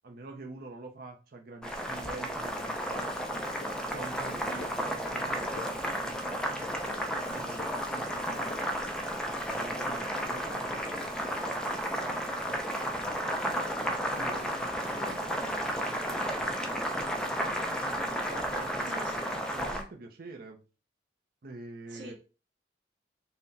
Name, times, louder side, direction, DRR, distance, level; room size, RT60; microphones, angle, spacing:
voice 1, 0.0-3.4 3.9-6.4 6.8-8.7 9.5-11.8 12.1-13.4 14.1-17.5 18.3-19.2 19.5-20.6 21.4-22.1, right 3 dB, 50° right, 2 dB, 0.5 m, -46 dB
Boiling, 1.6-19.8, equal, 5° left, 0.6 m, -33 dB
sound 1, 3.6-3.7 4.6-4.7 5.3-5.7 6.4-6.7 7.4-7.7 8.4-8.6, left 5 dB, 50° left, 0.4 m, -45 dB
voice 2, 18.8-19.4 21.9-22.1, right 1 dB, 80° right, -1 dB, 1.1 m, -45 dB
5.7 x 2.1 x 4.0 m, 0.34 s
head